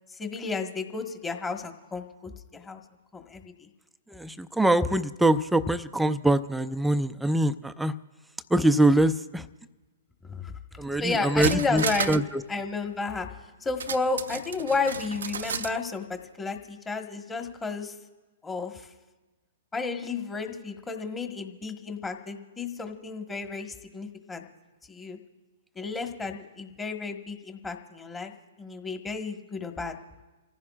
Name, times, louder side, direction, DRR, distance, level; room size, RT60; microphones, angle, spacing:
voice 1, 0.1-2.8 3.1-3.7 10.3-10.5 11.0-12.2 12.5-13.3 13.6-18.0 18.4-18.9 19.7-24.5 24.9-25.2 25.7-28.3 28.6-29.9, left 4 dB, 15° left, 5 dB, 1.4 m, -32 dB
voice 2, 4.1-7.9 8.5-9.4 10.8-12.4, right 1 dB, 5° right, 10 dB, 0.5 m, -24 dB
sound 1, 10.8-10.9 11.2-12.3 12.6-12.7 13.8-15.8 16.1-16.2, right 6 dB, 75° right, 0.6 m, -32 dB
29.5 x 15.0 x 2.5 m, 1.2 s
hypercardioid pair, 120°, 0 cm